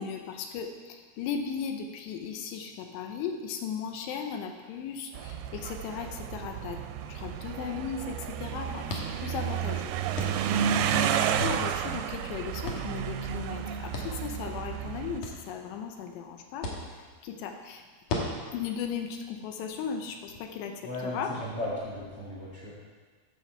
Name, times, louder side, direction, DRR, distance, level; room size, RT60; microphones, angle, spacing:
voice 1, 0.0-6.8 7.1-8.9 9.2-9.9 11.0-16.7 17.2-17.8 18.5-21.3, left 7 dB, 85° left, 4 dB, 2.9 m, -36 dB
sound 1, 5.1-15.2, right 8 dB, 85° right, 2.3 m, -31 dB
sound 2, 8.9-20.4, left 2 dB, 60° left, 2.3 m, -42 dB
voice 2, 20.8-22.7, left 1 dB, 45° left, -6 dB, 2.0 m, -35 dB
14.0 x 5.8 x 4.4 m, 1.5 s
omnidirectional pair, 4.9 m